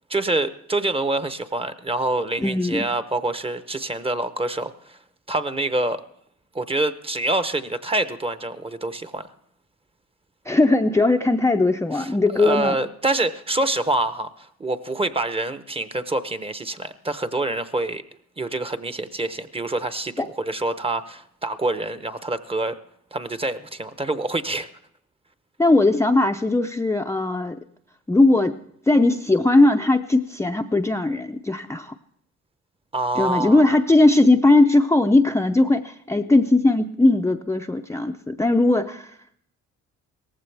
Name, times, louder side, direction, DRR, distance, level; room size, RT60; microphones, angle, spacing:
voice 1, 0.1-5.0 5.3-6.0 6.5-9.3 11.9-18.0 18.4-22.8 23.1-24.7 32.9-33.7, right 2 dB, 20° right, 12 dB, 0.8 m, -26 dB
voice 2, 2.4-2.8 10.5-12.8 20.2-20.3 25.6-27.6 28.1-28.6 28.9-31.9 33.2-39.2, left 2 dB, 10° left, 5 dB, 0.5 m, -19 dB
18.0 x 15.0 x 3.4 m, 0.68 s
cardioid pair, 90°, 30 cm